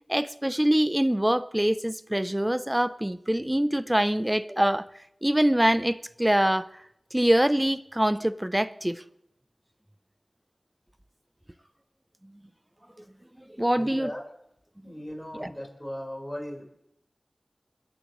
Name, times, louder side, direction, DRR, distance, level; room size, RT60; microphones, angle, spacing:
voice 1, 0.1-4.8 5.2-6.7 7.1-9.0 13.6-14.1 15.3-15.5, right 1 dB, 10° right, 0.6 m, -24 dB
voice 2, 13.8-14.2 14.8-16.6, equal, 15° left, 4.6 m, -37 dB
29.5 x 10.5 x 3.1 m
wide cardioid pair, 70°, 0 cm